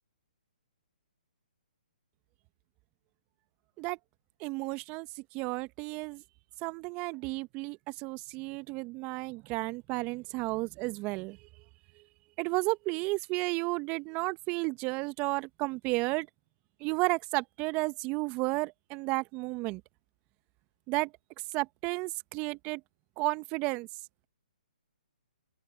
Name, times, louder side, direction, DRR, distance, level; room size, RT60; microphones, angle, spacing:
voice 1, 4.4-5.1 5.3-6.2 6.6-11.4 12.4-16.3 16.8-19.8 20.9-21.1 21.5-22.8 23.2-23.9, right 25 dB, 25° right, 1.2 m, -32 dB
open air
figure-of-eight pair, 130°, 5 cm